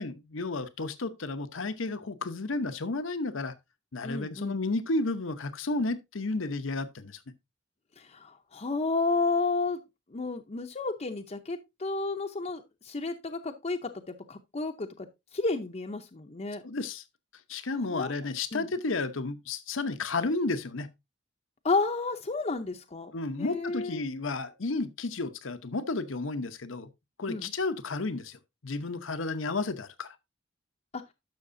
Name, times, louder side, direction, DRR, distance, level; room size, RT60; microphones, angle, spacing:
voice 1, 0.0-3.5 3.9-7.2 16.6-17.0 17.5-20.9 23.1-26.9 27.2-28.4 28.6-30.1, left 3 dB, 85° left, 0.9 m, -32 dB
voice 2, 4.0-4.6 8.0-9.8 10.1-15.1 15.3-16.6 17.9-18.1 18.5-18.7 21.6-23.1 23.4-24.0 27.3-27.5 30.9-31.0, left 3 dB, 35° left, 0.7 m, -31 dB
12.0 x 6.5 x 2.6 m
head